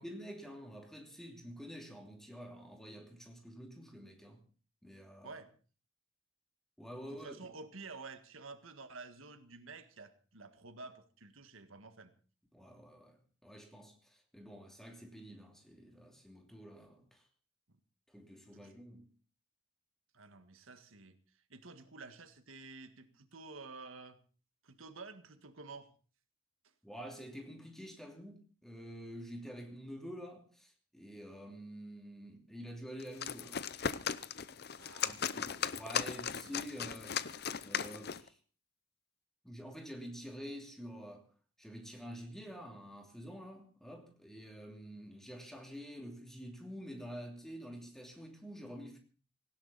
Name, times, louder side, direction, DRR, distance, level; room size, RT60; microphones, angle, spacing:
voice 1, 0.0-4.4 4.8-5.4 6.8-7.5 12.5-17.3 18.1-19.1 26.8-33.6 35.0-37.2 37.6-38.4 39.4-41.2 41.6-49.0, equal, ahead, 2.8 m, -48 dB
voice 2, 7.1-12.1 17.7-17.8 18.5-18.7 20.1-21.1 21.5-24.2 24.6-25.9 34.8-35.2 36.4-36.6, right 3 dB, 90° right, 1.7 m, -50 dB
sound 1, 33.0-38.3, left 7 dB, 50° left, 0.7 m, -37 dB
18.0 x 16.5 x 4.1 m
head